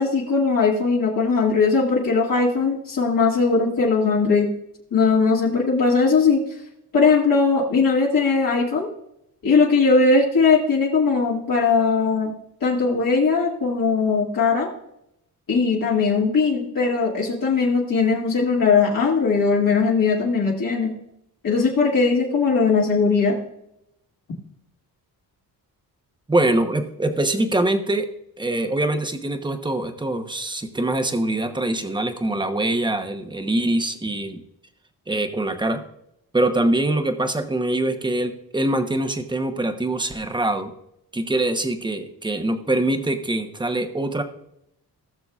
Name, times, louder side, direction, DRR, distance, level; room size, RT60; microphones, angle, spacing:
voice 1, 0.0-4.5 4.9-6.4 6.9-8.9 9.4-12.3 12.6-14.7 15.5-20.9 21.4-23.4, left 4 dB, 55° left, -4 dB, 2.0 m, -19 dB
voice 2, 26.3-28.1 28.4-34.4 35.1-35.8 36.3-40.7 41.1-44.2, right 1 dB, 10° right, 6 dB, 0.9 m, -23 dB
18.0 x 6.6 x 2.4 m, 0.79 s
cardioid pair, 120°, 39 cm